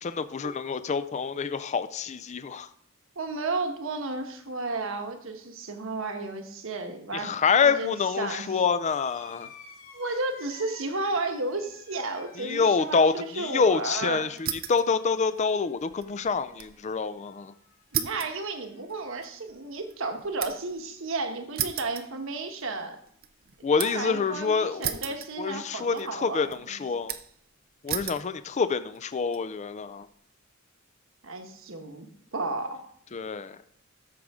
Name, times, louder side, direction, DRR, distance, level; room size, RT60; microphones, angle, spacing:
voice 1, 0.0-2.7 7.1-9.5 12.4-17.5 23.6-25.0 25.4-27.1 27.8-30.1 33.1-33.6, left 5 dB, 35° left, 13 dB, 0.4 m, -27 dB
voice 2, 3.2-8.5 9.9-14.3 17.9-23.0 23.7-26.8 31.2-32.1 32.3-32.9, right 3 dB, 65° right, 5 dB, 1.3 m, -33 dB
sound 1, 8.8-17.8 18.1-18.9 20.0-20.1, left 6 dB, 75° left, 1.9 m, -52 dB
sound 2, 14.4-14.9 15.2-16.8 17.1-17.2 17.9-20.8 21.6-22.7 23.1-24.1 24.8-25.7 26.0-26.6 27.1-27.4 27.9-28.3 28.9-29.4, right 10 dB, 45° right, 0.6 m, -35 dB
13.0 x 6.3 x 3.6 m, 0.67 s
head